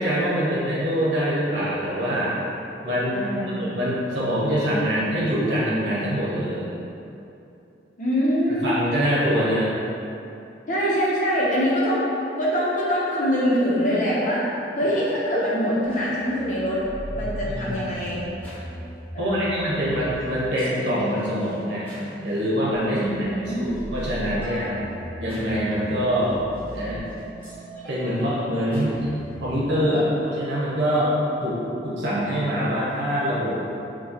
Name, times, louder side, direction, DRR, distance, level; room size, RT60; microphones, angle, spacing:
voice 1, 0.0-2.4 2.8-3.3 3.6-6.7 8.6-9.7 17.5-17.8 19.2-21.9 22.2-23.0 23.6-24.8 25.2-26.4 26.7-27.0 27.9-31.2 31.4-31.6 31.8-33.7, equal, 85° right, -7 dB, 1.0 m, -24 dB
voice 2, 3.1-3.7 8.0-8.8 10.7-12.1 12.4-14.4 14.8-16.8 17.1-18.3 19.1-19.8 22.8-23.7, equal, 45° left, -7 dB, 0.8 m, -24 dB
sound 1, 15.8-29.6, equal, 10° left, 1.0 m, -38 dB
4.8 x 2.3 x 2.9 m, 2.8 s
head